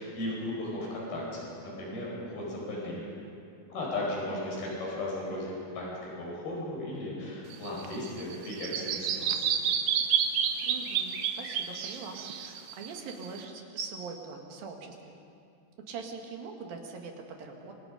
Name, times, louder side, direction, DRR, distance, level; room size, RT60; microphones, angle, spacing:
voice 1, 0.0-3.1 3.7-9.5, left 1 dB, 85° left, -4 dB, 7.0 m, -36 dB
voice 2, 4.0-4.4 10.6-15.2 15.9-17.7, right 4 dB, 70° right, 2 dB, 3.8 m, -42 dB
Bird vocalization bird call bird song, 7.5-13.4, right 8 dB, 90° right, 3.2 m, -30 dB
27.0 x 25.0 x 5.2 m, 2.4 s
omnidirectional pair, 4.3 m